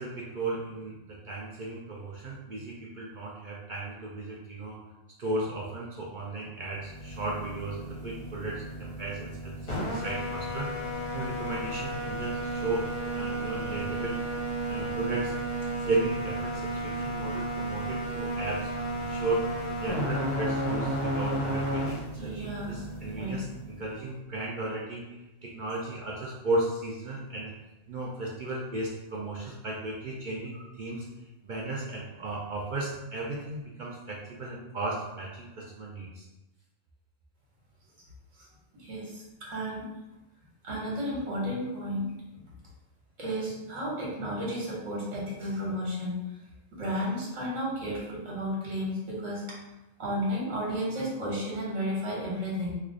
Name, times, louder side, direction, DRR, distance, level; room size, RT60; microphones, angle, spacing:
voice 1, 0.0-4.8 5.2-10.7 11.1-12.9 13.1-14.2 14.7-15.3 15.8-19.5 19.8-23.5 23.8-25.0 25.4-27.5 27.9-31.1 31.4-36.2, right 2 dB, 60° right, -4 dB, 0.5 m, -35 dB
sound 1, 6.8-24.0, right 1 dB, 45° left, 0.7 m, -33 dB
voice 2, 22.2-22.9 23.2-23.4 29.2-29.3 30.5-30.7 38.3-38.5 38.7-39.9 40.6-42.1 42.4-42.5 43.2-46.2 46.7-49.4 50.0-52.8, equal, 75° right, -5 dB, 1.5 m, -33 dB
3.2 x 2.3 x 3.7 m, 0.99 s
omnidirectional pair, 1.3 m